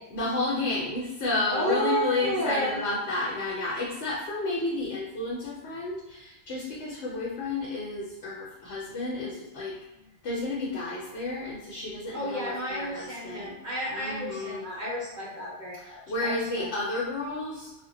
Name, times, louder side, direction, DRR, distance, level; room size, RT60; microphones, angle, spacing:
voice 1, 0.1-9.8 10.2-13.5 13.9-14.6 15.8-17.8, left 2 dB, 70° left, -5 dB, 0.9 m, -31 dB
voice 2, 1.5-2.8 12.1-16.6, equal, 50° right, -7 dB, 0.6 m, -31 dB
2.1 x 2.1 x 3.6 m, 1.0 s
omnidirectional pair, 1.2 m